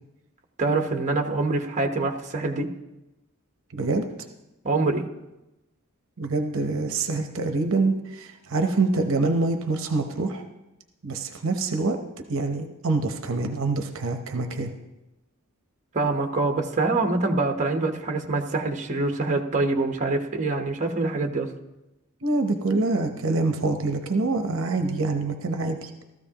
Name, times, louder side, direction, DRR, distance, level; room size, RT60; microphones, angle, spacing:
voice 1, 0.6-2.7 4.6-5.0 15.9-21.5, right 3 dB, 35° right, 4 dB, 1.1 m, -25 dB
voice 2, 3.7-4.1 6.2-10.5 11.0-12.0 12.3-14.7 22.2-26.0, right 3 dB, 60° right, 5 dB, 0.9 m, -25 dB
16.0 x 13.5 x 2.9 m, 0.99 s
head